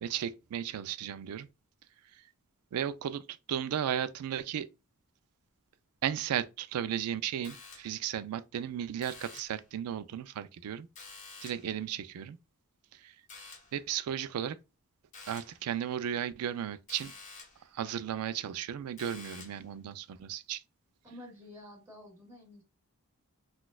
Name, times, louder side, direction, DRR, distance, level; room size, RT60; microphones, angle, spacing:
voice 1, 0.0-1.5 2.7-3.2 3.5-4.7 6.0-10.9 11.4-12.4 13.0-13.1 13.7-14.6 15.3-17.1 17.7-20.6, right 9 dB, 85° right, 0.3 m, -35 dB
sound 1, 7.4-8.1 9.0-9.7 11.0-11.8 13.3-13.8 15.1-15.7 16.9-17.7 19.0-19.7, left 4 dB, 35° left, 0.8 m, -50 dB
voice 2, 21.0-22.6, left 1 dB, 15° right, 1.4 m, -50 dB
4.0 x 2.3 x 2.3 m
head